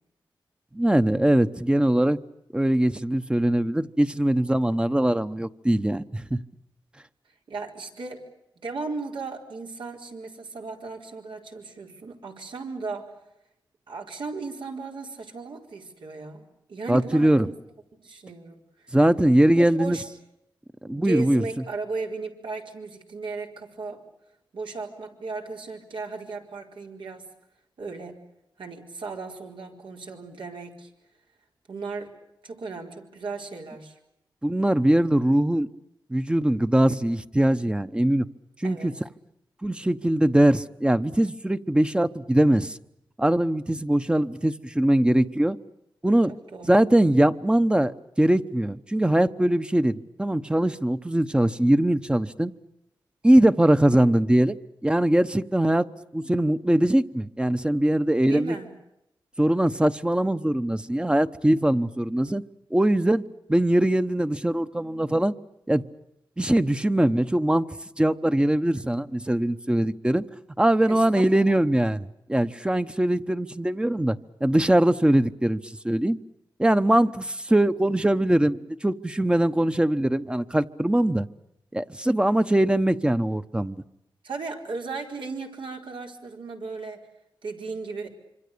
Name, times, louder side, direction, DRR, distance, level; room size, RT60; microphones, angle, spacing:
voice 1, 0.7-2.2 2.5-6.4 16.9-17.5 18.9-20.0 20.8-21.4 34.4-35.7 36.1-38.3 38.6-38.9 39.6-42.8 43.2-45.6 46.0-46.3 46.7-52.5 53.2-55.9 56.1-58.6 59.4-62.4 62.7-63.2 63.5-65.3 65.7-65.8 66.4-67.7 68.0-70.2 70.6-76.2 76.6-81.3 81.7-83.8, right 1 dB, 10° right, 1.0 m, -22 dB
voice 2, 7.5-8.2 8.6-13.1 13.9-16.4 16.7-17.5 17.9-18.9 19.5-20.0 20.8-24.0 24.5-27.2 27.8-28.2 28.6-30.9 31.7-32.1 32.4-34.0 38.6-38.9 46.5-46.8 58.3-58.7 70.9-71.5 84.2-87.0 87.4-88.1, right 4 dB, 80° right, 4.6 m, -36 dB
26.0 x 26.0 x 6.8 m
wide cardioid pair, 100°, 8 cm